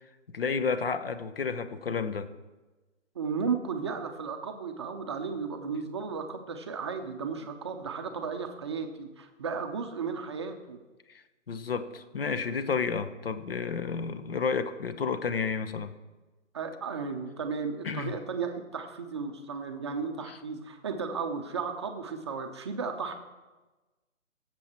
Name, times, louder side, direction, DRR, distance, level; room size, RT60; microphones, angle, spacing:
voice 1, 0.3-2.3 11.5-15.9 17.8-18.1 20.3-20.4, left 5 dB, 45° left, 11 dB, 0.9 m, -31 dB
voice 2, 3.1-10.8 16.5-23.1, right 5 dB, 20° right, 6 dB, 0.7 m, -34 dB
18.0 x 7.7 x 4.4 m, 1.2 s
figure-of-eight pair, 145°, 39 cm